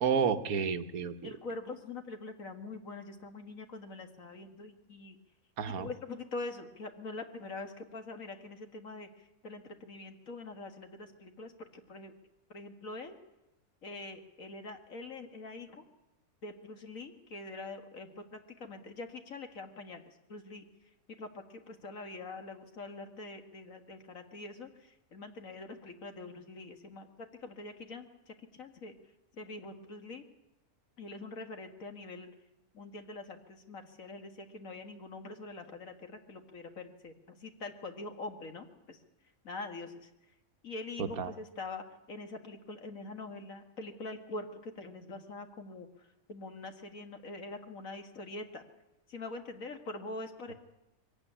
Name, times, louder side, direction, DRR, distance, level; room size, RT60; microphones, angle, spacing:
voice 1, 0.0-1.3 5.6-5.9 41.0-41.3, right 6 dB, 75° right, 9 dB, 1.5 m, -31 dB
voice 2, 1.2-5.2 5.8-9.1 9.4-11.5 11.9-12.1 12.5-13.2 13.8-15.8 16.4-20.0 20.3-20.7 21.2-24.7 25.1-27.1 27.4-28.1 28.6-28.9 29.4-30.2 31.0-32.3 32.7-39.0 39.4-40.1 40.6-45.9 46.3-48.6 49.1-50.5, left 3 dB, 65° left, 6 dB, 2.1 m, -44 dB
22.5 x 16.0 x 10.0 m, 0.95 s
omnidirectional pair, 1.6 m